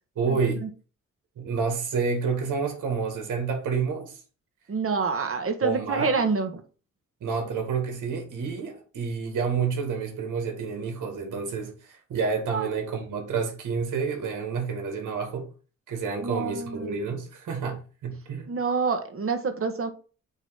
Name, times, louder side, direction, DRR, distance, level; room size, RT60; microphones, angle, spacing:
voice 1, 0.2-0.6 1.4-4.2 5.6-6.2 7.2-15.5 15.9-18.5, right 5 dB, 85° right, 2.1 m, -29 dB
voice 2, 4.7-6.6 12.5-12.7 16.2-16.9 18.5-19.9, right 4 dB, 45° right, 1.7 m, -27 dB
9.0 x 3.1 x 5.8 m
cardioid pair, 75°, 30 cm